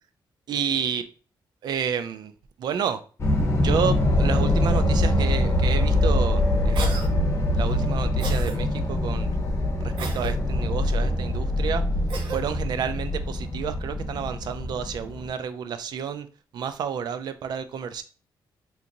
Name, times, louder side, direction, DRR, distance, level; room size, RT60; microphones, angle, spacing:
voice 1, 0.5-1.0 1.6-2.3 2.6-3.0 3.5-7.1 7.5-9.3 9.8-11.8 12.3-16.3 16.5-18.0, right 7 dB, 60° right, 10 dB, 0.4 m, -30 dB
sound 1, 3.2-15.3, left 1 dB, 35° left, 0.8 m, -24 dB
Cough, 6.8-7.1 8.2-8.6 10.0-10.3 12.1-12.4, right 4 dB, 85° right, 0.8 m, -33 dB
3.8 x 2.9 x 2.6 m, 0.37 s
cardioid pair, 140°, 8 cm